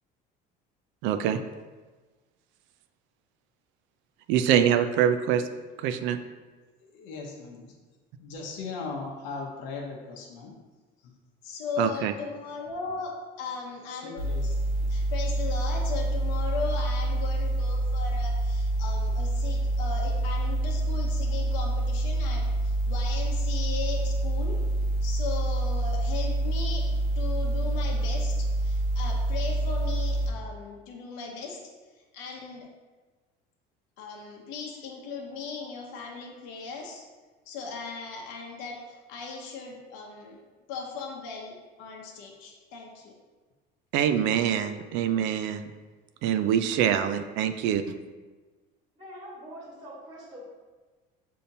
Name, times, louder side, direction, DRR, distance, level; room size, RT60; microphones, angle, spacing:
voice 1, 1.0-1.4 4.3-5.5 5.8-6.2 11.8-12.1 43.9-45.6 46.2-47.8, right 9 dB, 70° right, 9 dB, 0.4 m, -24 dB
voice 2, 6.9-7.7 8.2-10.6 11.0-11.1 11.4-24.6 25.0-31.6 32.1-32.7 34.0-37.0 37.5-40.4 40.7-43.1, left 4 dB, 75° left, -1 dB, 0.8 m, -37 dB
sound 1, 14.2-30.3, right 1 dB, 50° right, 1.0 m, -27 dB
voice 3, 48.9-50.5, equal, 20° right, -5 dB, 1.4 m, -44 dB
6.6 x 2.8 x 2.7 m, 1.3 s
cardioid pair, 140°, 20 cm